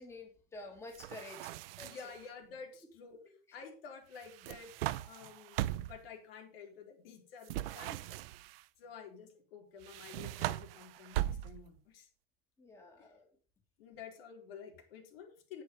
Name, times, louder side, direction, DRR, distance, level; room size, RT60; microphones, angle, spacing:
voice 1, 0.0-1.4 1.8-1.9 12.6-13.3, left 2 dB, 10° left, 1 dB, 2.4 m, -49 dB
sound 1, 0.9-2.2 4.2-6.1 7.4-8.6 9.8-11.8, right 15 dB, 75° right, 0.7 m, -39 dB
voice 2, 1.8-3.2 3.5-4.7 5.1-8.2 8.8-12.1 13.0-13.1 13.8-15.6, left 6 dB, 75° left, 2 dB, 4.2 m, -51 dB
10.0 x 9.0 x 5.3 m, 0.40 s
supercardioid pair, 165°, 30 cm